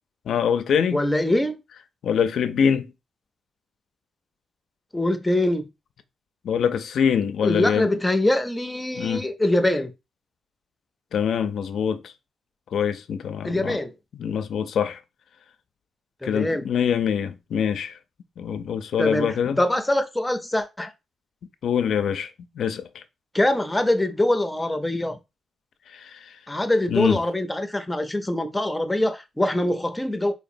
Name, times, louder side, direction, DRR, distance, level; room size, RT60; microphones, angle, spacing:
voice 1, 0.3-1.0 2.0-2.9 6.4-7.9 9.0-9.3 11.1-12.1 12.7-13.8 14.2-15.0 16.2-17.9 18.4-19.6 21.6-22.3 22.6-23.0 25.9-26.3 26.9-27.2, left 7 dB, 70° left, 0.4 m, -24 dB
voice 2, 0.9-1.6 4.9-5.7 7.4-9.9 13.4-13.9 16.2-16.6 19.0-20.9 23.3-25.2 26.5-30.3, left 1 dB, 10° left, 0.5 m, -23 dB
4.2 x 3.0 x 2.6 m
wide cardioid pair, 140°, 0 cm